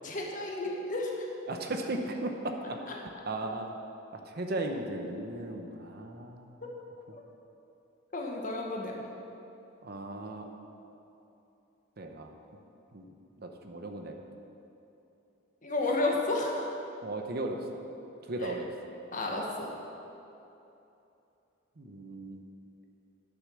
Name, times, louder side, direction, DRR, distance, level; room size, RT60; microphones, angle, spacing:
voice 1, 0.0-1.3 6.6-6.7 7.1-7.2 8.1-9.0 15.6-16.7 18.4-18.5 19.1-19.7, left 2 dB, 40° left, -1 dB, 1.4 m, -32 dB
voice 2, 1.5-3.7 4.1-6.6 9.8-10.5 12.0-12.3 12.9-14.2 17.0-17.8 18.2-18.7 21.8-22.5, right 2 dB, 50° right, 4 dB, 0.9 m, -37 dB
10.5 x 6.8 x 6.4 m, 2.9 s
head